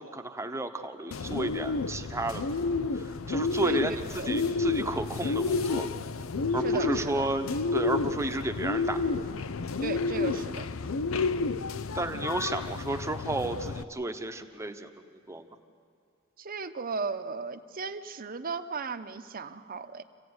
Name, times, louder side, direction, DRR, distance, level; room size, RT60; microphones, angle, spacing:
voice 1, 0.0-2.4 2.9-3.9 4.3-5.9 6.5-9.0 11.9-14.9 15.3-15.5, right 2 dB, 15° right, 6 dB, 1.0 m, -32 dB
Bird, 1.1-13.8, left 4 dB, 70° left, 0.6 m, -30 dB
voice 2, 3.6-4.3 6.6-7.3 9.8-10.7 16.4-20.0, right 4 dB, 45° right, 8 dB, 0.9 m, -36 dB
26.5 x 15.5 x 9.6 m, 2.2 s
head